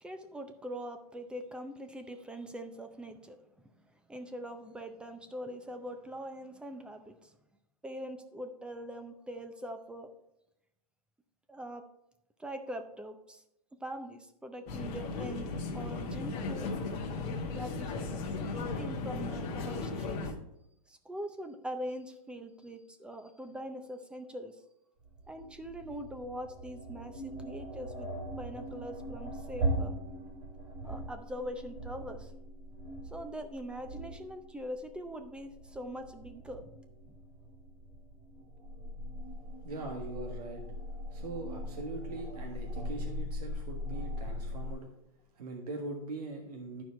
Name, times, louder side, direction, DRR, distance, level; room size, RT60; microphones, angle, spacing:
voice 1, 0.0-3.4 4.1-7.3 7.8-10.1 11.5-11.8 12.4-13.4 13.8-15.5 15.7-16.7 17.4-20.3 20.9-24.6 25.3-28.1 28.3-29.9 30.8-32.3 33.0-37.2, equal, 5° right, 7 dB, 0.5 m, -42 dB
sound 1, 14.7-20.3, left 3 dB, 35° left, 1.2 m, -36 dB
sound 2, 25.0-44.7, equal, 40° right, 3.0 m, -40 dB
voice 2, 39.6-40.6 41.1-44.9 45.3-46.8, right 2 dB, 80° right, 2 dB, 1.6 m, -41 dB
11.5 x 4.7 x 4.6 m, 0.83 s
hypercardioid pair, 145°, 20 cm